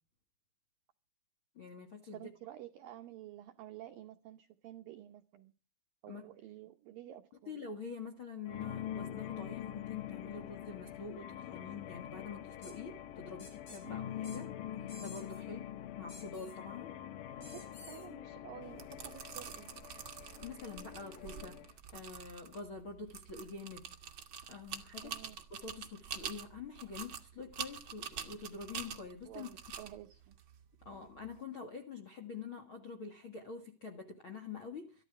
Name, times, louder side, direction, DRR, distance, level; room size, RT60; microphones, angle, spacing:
voice 1, 1.5-2.3 6.1-6.2 7.5-14.5 14.8-15.7 16.0-16.9 20.3-21.6 21.9-23.9 24.5-25.1 25.5-29.5 30.8-35.0, left 5 dB, 55° left, 1.4 m, -46 dB
voice 2, 2.1-5.5 6.0-7.6 13.8-14.0 17.4-19.7 25.0-25.4 29.3-30.4, right 13 dB, 80° right, 2.0 m, -51 dB
sound 1, 8.5-21.7, left 10 dB, 80° left, 1.9 m, -45 dB
sound 2, 12.6-12.7 13.4-13.8 14.2-14.4 14.9-15.4 16.1-16.5 17.4-18.1, left 1 dB, 40° left, 8.3 m, -53 dB
sound 3, 18.6-31.4, right 7 dB, 65° right, 1.2 m, -47 dB
23.0 x 13.0 x 4.8 m
omnidirectional pair, 5.3 m